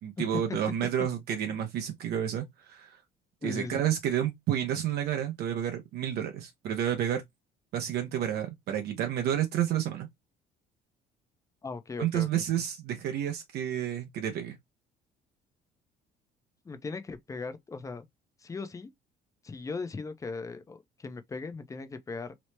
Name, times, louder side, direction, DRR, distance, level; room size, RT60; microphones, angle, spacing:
voice 1, 0.0-3.0 3.4-7.2 7.7-10.1 12.0-14.6, right 10 dB, 70° right, 0.6 m, -30 dB
voice 2, 3.4-3.9 11.6-12.4 16.6-18.1 18.4-18.9 19.4-22.3, left 4 dB, 20° left, 0.5 m, -38 dB
2.9 x 2.0 x 3.1 m
cardioid pair, 110°, 17 cm